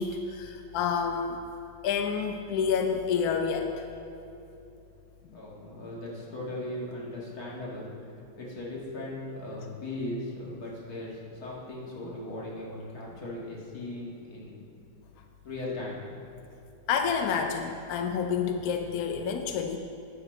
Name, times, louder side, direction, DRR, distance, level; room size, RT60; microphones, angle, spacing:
voice 1, 0.0-1.4 1.8-3.9 16.9-19.8, left 6 dB, 70° left, 5 dB, 0.9 m, -29 dB
voice 2, 5.3-7.9 8.4-14.6 15.4-16.0, left 1 dB, 50° left, -4 dB, 2.2 m, -38 dB
10.0 x 7.4 x 5.3 m, 2.9 s
omnidirectional pair, 2.1 m